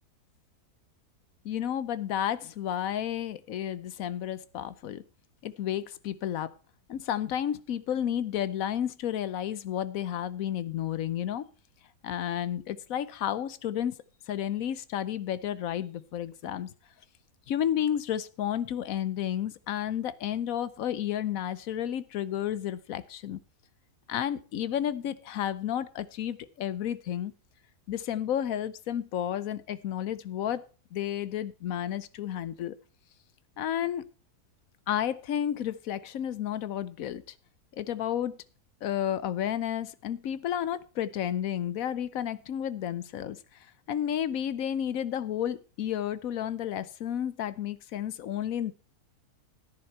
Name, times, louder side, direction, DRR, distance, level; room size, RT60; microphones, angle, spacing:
voice 1, 1.4-5.0 5.4-6.5 6.9-11.5 12.0-14.0 14.3-16.7 17.5-23.4 24.1-27.3 27.9-30.6 30.9-32.7 33.6-34.0 34.9-37.2 37.7-38.4 38.8-43.4 43.9-48.7, left 10 dB, 65° left, 16 dB, 1.1 m, -31 dB
10.5 x 10.5 x 4.4 m, 0.36 s
omnidirectional pair, 1.6 m